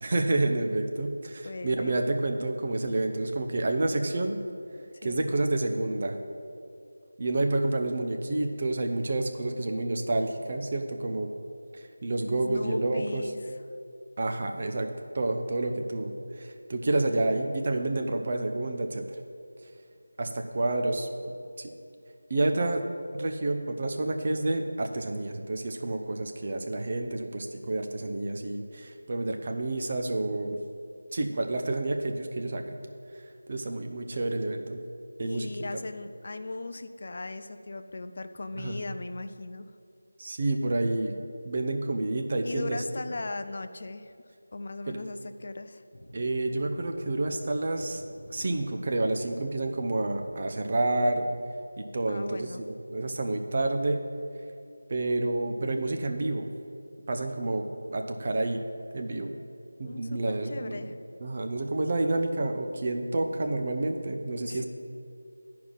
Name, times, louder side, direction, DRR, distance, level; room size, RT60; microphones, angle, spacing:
voice 1, 0.0-4.4 5.0-6.2 7.2-11.3 11.7-13.2 14.2-14.9 15.1-19.0 20.2-21.1 21.6-21.7 22.3-22.8 23.1-30.6 31.1-32.7 33.5-34.8 35.2-35.8 38.6-38.8 40.2-41.1 41.4-42.8 44.9-45.0 46.1-48.0 48.3-51.3 51.8-54.1 54.9-56.5 57.1-58.6 58.9-59.3 59.8-60.9 61.2-64.6, right 2 dB, 40° right, 4 dB, 0.7 m, -29 dB
voice 2, 1.4-1.9 5.0-5.3 12.3-13.6 35.2-39.7 42.4-44.1 44.5-45.8 52.1-52.7 59.8-61.0 64.4-64.6, left 2 dB, 45° left, 9 dB, 0.4 m, -38 dB
sound 1, 45.9-51.4, left 1 dB, 70° left, 0.8 m, -49 dB
11.0 x 4.8 x 5.5 m, 2.4 s
figure-of-eight pair, 165°, 0 cm